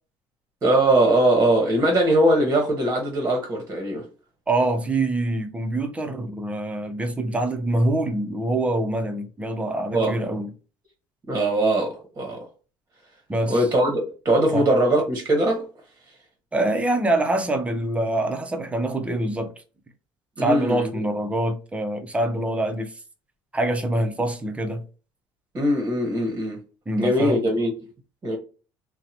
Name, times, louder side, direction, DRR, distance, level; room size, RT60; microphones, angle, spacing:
voice 1, 0.6-4.1 9.9-10.2 11.3-12.5 13.5-15.7 20.4-20.9 25.5-26.6 27.0-27.7 28.2-28.4, right 1 dB, 30° right, 0.9 m, -21 dB
voice 2, 4.5-10.5 13.3-13.6 14.5-14.6 16.5-19.5 20.4-22.9 23.5-24.8 26.9-27.4, right 1 dB, 15° right, 0.5 m, -25 dB
2.8 x 2.1 x 2.7 m
cardioid pair, 100°, 10 cm